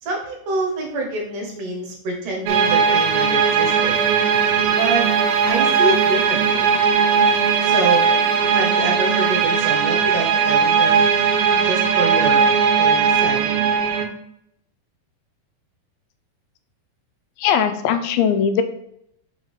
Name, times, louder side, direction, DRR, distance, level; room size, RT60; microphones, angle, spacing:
voice 1, 0.0-4.0 4.7-5.1 5.5-6.7 7.6-8.1 8.5-11.0 11.6-12.5 12.8-13.7, right 3 dB, 65° right, 0 dB, 2.7 m, -26 dB
sound 1, 2.5-14.1, right 6 dB, 85° right, 2.5 m, -18 dB
voice 2, 17.4-18.6, left 7 dB, 85° left, 8 dB, 2.5 m, -19 dB
6.0 x 3.7 x 5.4 m, 0.75 s
omnidirectional pair, 4.1 m